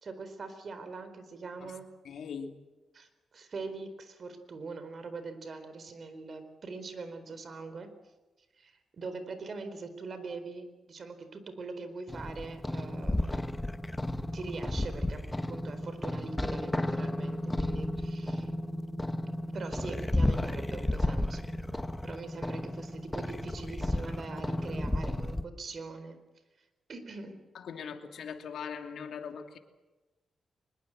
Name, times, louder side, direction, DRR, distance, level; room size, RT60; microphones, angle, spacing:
voice 1, 0.0-1.9 2.9-3.1 3.3-7.9 8.6-13.4 14.3-15.2 15.5-18.5 19.5-21.5 22.0-26.2 26.9-27.4, right 4 dB, 55° right, 10 dB, 4.2 m, -42 dB
voice 2, 2.0-2.5 27.5-29.6, left 6 dB, 80° left, 5 dB, 2.7 m, -40 dB
sound 1, 12.1-25.4, left 1 dB, 15° left, 1.3 m, -33 dB
24.5 x 21.5 x 7.7 m, 1.1 s
cardioid pair, 90°, 0 cm